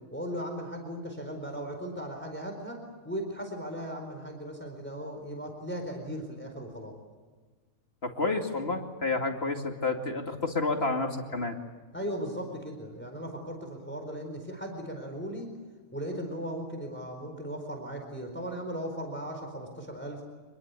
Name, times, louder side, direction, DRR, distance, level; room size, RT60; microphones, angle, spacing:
voice 1, 0.1-6.9 11.9-15.5 15.9-20.2, equal, 5° left, 4 dB, 4.4 m, -37 dB
voice 2, 8.0-11.6, left 3 dB, 45° left, 3 dB, 2.7 m, -30 dB
26.5 x 21.5 x 8.4 m, 1.4 s
omnidirectional pair, 1.5 m